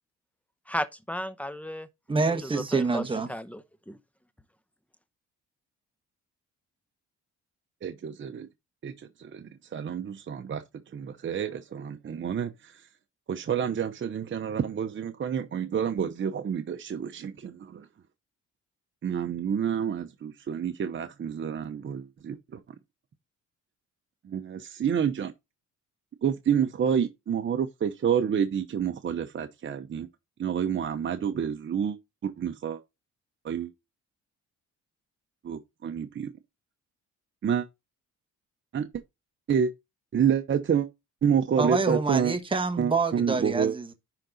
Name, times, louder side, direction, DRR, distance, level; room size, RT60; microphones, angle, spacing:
voice 1, 0.7-1.9 2.4-3.0 3.3-3.6 3.9-4.0, equal, 5° left, 0.8 m, -34 dB
voice 2, 2.1-3.3 41.6-43.9, right 4 dB, 15° right, 1.2 m, -27 dB
voice 3, 7.8-8.5 8.8-10.6 10.9-12.9 13.3-17.9 19.0-22.6 24.2-25.3 26.2-30.1 30.4-32.0 32.2-32.8 33.4-33.7 35.4-36.3 37.4-37.7 38.7-38.9 39.5-39.7 40.1-40.9 41.2-42.3 42.8-43.7, right 8 dB, 40° right, 0.8 m, -28 dB
10.5 x 3.9 x 3.9 m
cardioid pair, 90°, 30 cm